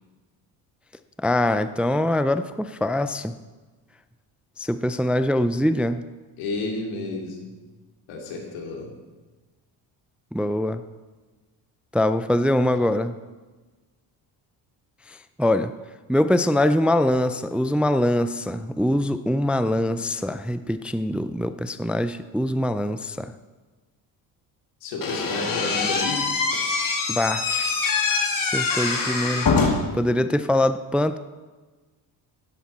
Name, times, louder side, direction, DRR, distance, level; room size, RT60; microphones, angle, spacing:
voice 1, 1.2-3.3 4.6-6.0 10.3-10.8 11.9-13.1 15.1-15.7 16.1-23.3 27.1-27.9 28.5-29.5 29.9-31.2, left 1 dB, 5° right, 11 dB, 0.4 m, -23 dB
voice 2, 6.4-7.5 8.1-9.0 24.8-26.3, left 3 dB, 85° left, 0 dB, 2.6 m, -31 dB
Slam / Squeak, 25.0-30.0, left 4 dB, 45° left, 2.2 m, -24 dB
12.0 x 10.0 x 4.2 m, 1.3 s
supercardioid pair, 80°, 46 cm